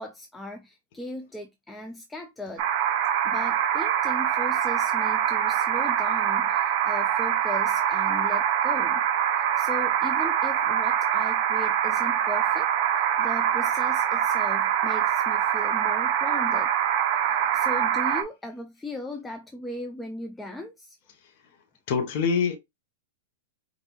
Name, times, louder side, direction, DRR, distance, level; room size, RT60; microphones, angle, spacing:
voice 1, 0.0-2.6 3.2-9.0 9.3-12.7 13.0-16.7 17.2-21.0, left 1 dB, 5° left, 0.4 m, -38 dB
sound 1, 2.6-18.2, right 9 dB, 50° right, 0.7 m, -24 dB
voice 2, 21.9-22.6, left 6 dB, 50° left, 0.9 m, -24 dB
5.3 x 2.5 x 3.0 m
supercardioid pair, 145°, 0 cm